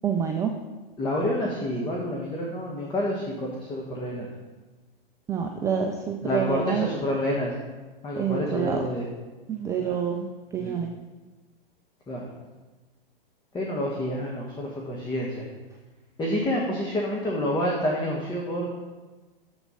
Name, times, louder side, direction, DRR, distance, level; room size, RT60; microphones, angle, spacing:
voice 1, 0.0-0.5 5.3-6.9 8.1-8.8 9.5-10.3 10.5-10.9, right 7 dB, 10° right, 3 dB, 0.4 m, -27 dB
voice 2, 1.0-4.3 6.2-7.5 8.0-9.0 9.8-9.9 10.6-10.8 12.1-12.3 13.5-15.4 16.2-18.8, equal, 15° left, -2 dB, 1.4 m, -28 dB
7.5 x 6.9 x 5.7 m, 1.2 s
hypercardioid pair, 110°, 30 cm